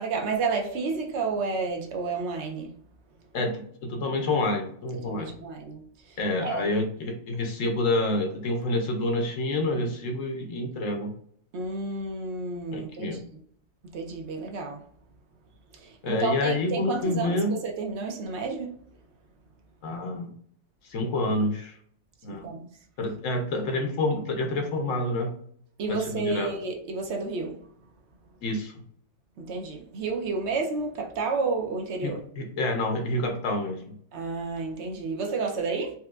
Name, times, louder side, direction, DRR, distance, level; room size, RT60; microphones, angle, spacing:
voice 1, 0.0-2.7 5.0-5.8 6.4-6.7 11.5-13.2 13.9-14.8 16.1-18.7 22.3-22.6 25.8-27.6 29.4-32.2 34.1-35.9, right 4 dB, 65° right, 0.9 m, -30 dB
voice 2, 3.3-5.3 6.2-11.1 12.7-13.2 16.0-17.6 19.8-20.3 20.9-21.7 22.2-22.5 23.0-25.3 25.9-26.5 28.4-28.7 32.0-33.8, left 2 dB, 75° left, 1.0 m, -28 dB
4.3 x 2.2 x 2.3 m
omnidirectional pair, 1.4 m